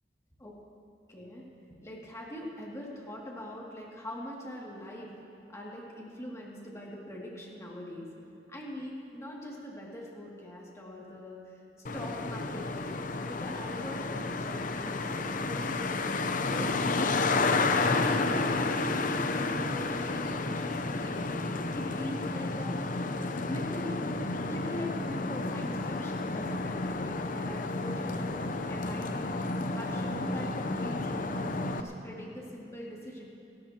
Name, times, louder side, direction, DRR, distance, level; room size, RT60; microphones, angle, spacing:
voice 1, 1.1-1.4 1.8-5.1 5.5-8.1 8.5-11.6 11.9-15.7 16.2-18.8 19.2-21.5 21.7-22.9 23.5-24.0 24.5-28.3 28.7-29.4 29.7-33.2, left 1 dB, 15° left, -4 dB, 2.4 m, -42 dB
Traffic noise roadway noise, 11.9-31.8, left 3 dB, 50° left, 0.7 m, -31 dB
29.5 x 14.0 x 2.9 m, 2.9 s
head